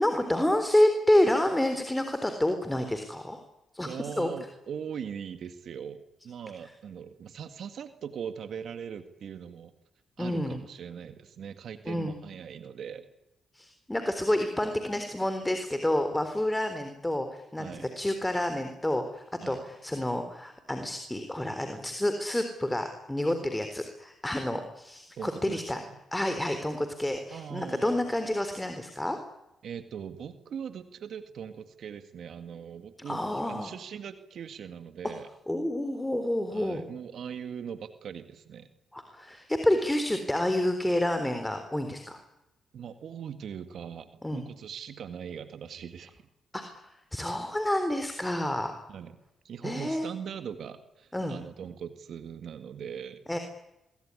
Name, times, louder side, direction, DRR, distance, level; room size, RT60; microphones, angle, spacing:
voice 1, 0.0-3.4 3.7-3.9 4.2-4.3 10.2-10.6 11.9-12.1 13.5-25.8 26.1-29.2 33.1-33.7 35.5-36.8 38.9-42.2 44.2-44.4 46.5-48.8 49.6-50.1 51.1-51.4 53.3-53.4, left 1 dB, 10° left, 7 dB, 3.8 m, -29 dB
voice 2, 3.8-9.7 10.2-13.1 17.6-17.9 19.4-19.7 25.2-25.9 27.3-28.0 29.6-35.3 36.5-38.7 42.7-46.2 48.9-49.1 49.4-53.2, right 7 dB, 65° right, 10 dB, 1.9 m, -40 dB
25.5 x 23.0 x 9.8 m, 0.97 s
supercardioid pair, 50°, 0 cm